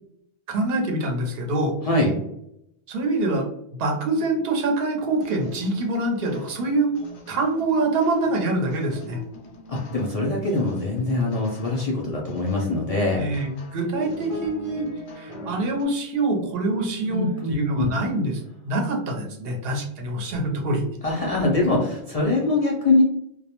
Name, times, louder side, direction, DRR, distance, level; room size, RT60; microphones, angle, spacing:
voice 1, 0.5-1.8 2.9-3.5 3.8-6.9 7.3-9.2 13.2-14.9 15.2-20.8, right 2 dB, 65° right, 1 dB, 0.8 m, -25 dB
voice 2, 1.8-2.1 9.7-13.3 17.1-17.9 21.0-23.0, left 2 dB, 60° left, -3 dB, 0.4 m, -23 dB
sound 1, 5.2-15.8, left 1 dB, 85° left, 0.9 m, -45 dB
sound 2, 13.9-15.8 16.1-17.7 18.2-18.4, equal, 5° right, 0.6 m, -39 dB
2.3 x 2.1 x 2.8 m, 0.78 s
omnidirectional pair, 1.1 m